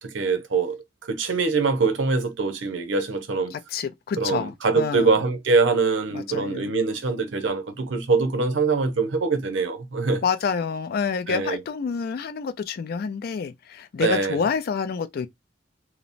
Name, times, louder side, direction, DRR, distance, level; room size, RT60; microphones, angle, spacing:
voice 1, 0.0-3.5 4.2-10.2 11.3-11.6 14.0-14.4, right 4 dB, 90° right, 0.7 m, -23 dB
voice 2, 3.5-5.2 6.1-6.7 10.2-15.3, left 6 dB, 55° left, 0.3 m, -28 dB
2.9 x 2.1 x 2.5 m
head